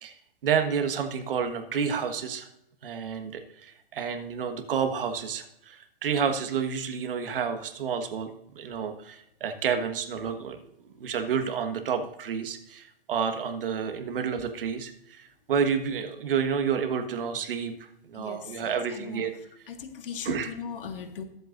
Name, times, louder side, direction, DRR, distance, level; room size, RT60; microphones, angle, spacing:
voice 1, 0.4-2.5 2.8-10.6 11.0-17.7 18.1-19.3 20.2-20.5, right 7 dB, 65° right, 7 dB, 1.5 m, -30 dB
voice 2, 19.8-21.2, left 7 dB, 60° left, 6 dB, 1.8 m, -37 dB
22.0 x 8.1 x 2.6 m, 0.82 s
hypercardioid pair, 145°, 30 cm